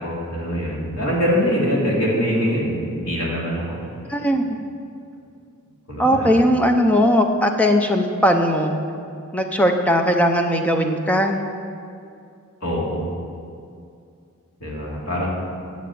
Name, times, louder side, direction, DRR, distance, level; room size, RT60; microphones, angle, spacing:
voice 1, 0.0-3.8 4.2-4.3 5.9-6.4 12.6-13.1 14.6-15.3, equal, 80° left, -4 dB, 3.0 m, -23 dB
voice 2, 4.1-4.6 6.0-8.8 9.3-11.4, equal, 5° left, 4 dB, 0.7 m, -18 dB
9.1 x 7.5 x 7.6 m, 2.4 s
head